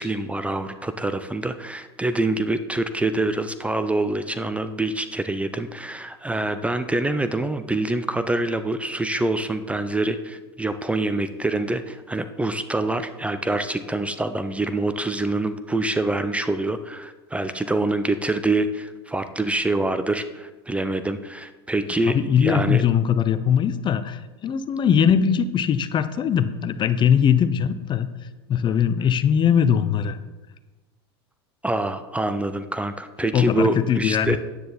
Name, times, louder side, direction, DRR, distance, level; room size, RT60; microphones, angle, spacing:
voice 1, 0.0-22.8 31.6-34.4, right 2 dB, 10° right, 10 dB, 0.6 m, -25 dB
voice 2, 22.1-28.1 28.5-30.2 33.3-34.4, left 8 dB, 35° left, 13 dB, 0.7 m, -20 dB
9.8 x 9.3 x 4.0 m, 1.2 s
hypercardioid pair, 95°, 14 cm